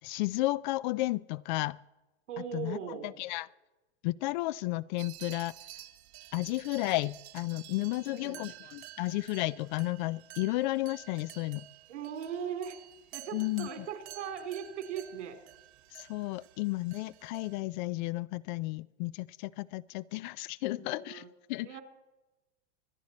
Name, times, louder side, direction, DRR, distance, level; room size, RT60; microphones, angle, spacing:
voice 1, 0.0-1.8 2.5-3.5 4.0-5.6 6.3-11.7 13.3-13.9 15.9-21.8, left 19 dB, 40° left, 20 dB, 0.4 m, -33 dB
voice 2, 2.3-3.1 8.1-8.5 11.9-12.8 13.1-15.4 20.7-21.3 21.6-21.8, right 8 dB, 80° right, 6 dB, 3.1 m, -39 dB
Flock of sheep, 5.0-17.6, right 15 dB, 65° right, 1.2 m, -51 dB
25.5 x 9.7 x 4.2 m, 1.0 s
hypercardioid pair, 120°, 35 cm